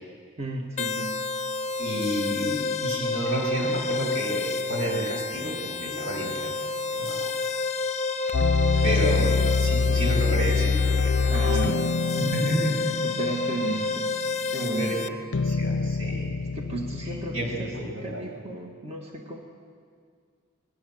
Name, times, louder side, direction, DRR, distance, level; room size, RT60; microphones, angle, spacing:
voice 1, 0.4-1.2 8.8-8.9 9.2-9.3 11.3-11.9 13.0-14.1 14.5-15.0 16.5-19.4, right 2 dB, 30° right, 1 dB, 1.8 m, -34 dB
sound 1, 0.8-15.1, left 3 dB, 35° left, 1.0 m, -30 dB
voice 2, 1.8-6.7 6.9-7.2 8.8-11.4 12.2-12.8 14.6-15.0 15.4-16.3 17.0-18.2, right 1 dB, 85° right, 0 dB, 7.2 m, -30 dB
sound 2, 8.3-14.5 15.3-17.9, left 4 dB, 65° left, 0.5 m, -25 dB
26.5 x 20.5 x 7.8 m, 2.1 s
head